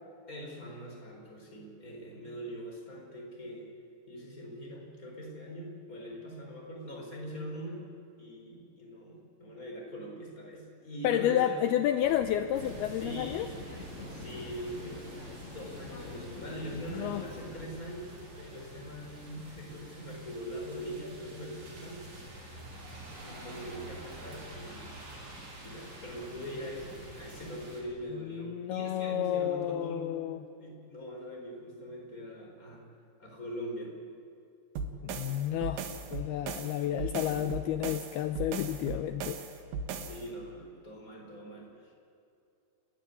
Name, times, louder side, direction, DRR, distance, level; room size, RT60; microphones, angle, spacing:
voice 1, 0.3-3.7 4.1-7.8 8.2-11.7 13.0-13.5 14.1-22.1 23.2-25.0 25.6-30.1 30.6-32.8 33.2-33.9 36.9-37.5 40.0-41.9, equal, 20° left, 0 dB, 4.8 m, -42 dB
voice 2, 11.0-13.5 16.9-17.3 28.2-30.4 35.0-39.4, left 11 dB, 80° left, 9 dB, 2.4 m, -31 dB
sound 1, 12.0-17.7, left 3 dB, 60° left, 0.7 m, -47 dB
sound 2, 12.5-27.8, right 1 dB, 65° right, 6.7 m, -47 dB
sound 3, 34.8-40.2, right 4 dB, 85° right, 3.9 m, -38 dB
29.5 x 13.5 x 9.8 m, 2.6 s
omnidirectional pair, 5.1 m